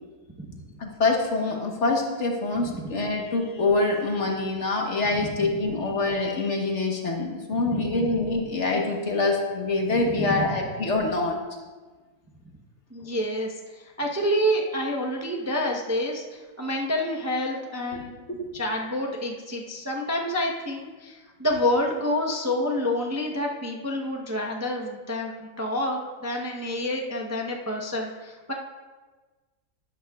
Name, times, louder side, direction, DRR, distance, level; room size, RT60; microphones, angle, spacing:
voice 1, 0.8-11.4 18.3-18.5, left 3 dB, 50° left, 1 dB, 1.5 m, -25 dB
voice 2, 10.0-10.5 12.9-18.1 18.5-28.5, left 1 dB, 15° right, -1 dB, 0.7 m, -28 dB
12.5 x 11.5 x 2.4 m, 1.3 s
omnidirectional pair, 1.7 m